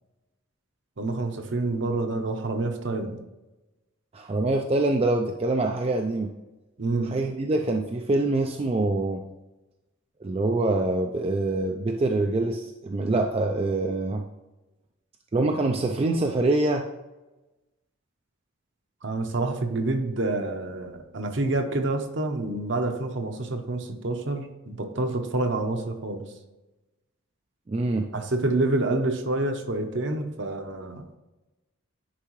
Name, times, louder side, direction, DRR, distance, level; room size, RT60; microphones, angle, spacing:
voice 1, 1.0-3.2 6.8-7.2 19.0-26.2 28.1-31.0, right 2 dB, 55° right, 6 dB, 0.8 m, -28 dB
voice 2, 4.1-6.3 7.0-9.2 10.2-14.2 15.3-16.9 27.7-28.1, right 2 dB, 30° right, 3 dB, 0.3 m, -25 dB
10.0 x 4.6 x 3.1 m, 1.1 s
head